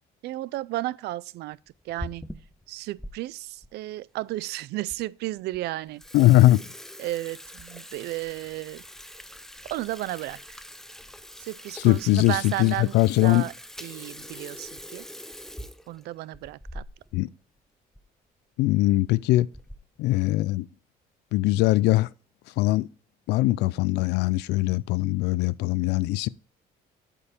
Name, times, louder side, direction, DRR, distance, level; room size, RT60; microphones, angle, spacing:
voice 1, 0.2-1.6 1.8-2.2 2.7-6.0 7.0-8.8 9.6-10.6 11.4-13.5 13.8-15.0 15.9-16.8, right 16 dB, 75° right, 0.4 m, -33 dB
Water tap faucet / Sink (filling or washing), 1.7-3.1 3.6-3.7 4.4-4.5 4.9-5.0 5.4-5.6 5.9-17.3 17.6-17.7 17.9-18.1 18.9-19.1 19.5-20.0, equal, ahead, 0.5 m, -43 dB
voice 2, 6.1-6.7 11.7-13.5 17.1-17.3 18.6-19.5 20.0-20.7 21.3-22.1 22.6-22.9 23.3-26.3, left 17 dB, 85° left, 0.4 m, -21 dB
8.2 x 5.4 x 4.3 m
cardioid pair, 110°, 17 cm